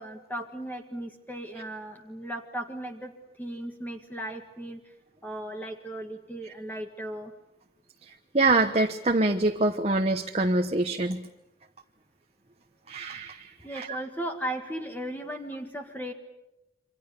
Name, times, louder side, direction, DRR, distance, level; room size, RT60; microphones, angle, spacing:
voice 1, 0.0-3.1 3.4-4.8 5.2-7.3 13.6-16.1, right 1 dB, 10° left, 4 dB, 1.8 m, -36 dB
voice 2, 8.3-11.2 12.9-13.9, right 2 dB, 35° right, 4 dB, 1.1 m, -25 dB
28.0 x 25.5 x 6.9 m, 0.97 s
head